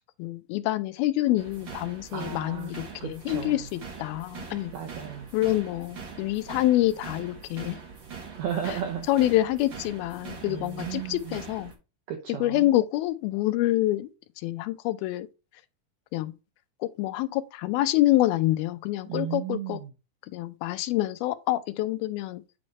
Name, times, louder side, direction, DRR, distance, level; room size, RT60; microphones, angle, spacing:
voice 1, 0.2-4.7 5.3-7.8 8.7-8.8 9.1-11.7 12.4-14.1 14.4-15.3 16.1-16.3 16.8-19.8 20.3-22.4, left 16 dB, 85° left, 2.5 m, -26 dB
sound 1, 1.4-11.7, right 5 dB, 45° right, 1.7 m, -43 dB
voice 2, 2.1-2.7 3.0-3.6 4.7-5.3 8.3-9.1 10.5-11.4 12.1-12.7 19.1-19.9, right 9 dB, 80° right, 1.6 m, -34 dB
8.7 x 3.2 x 5.3 m
omnidirectional pair, 4.3 m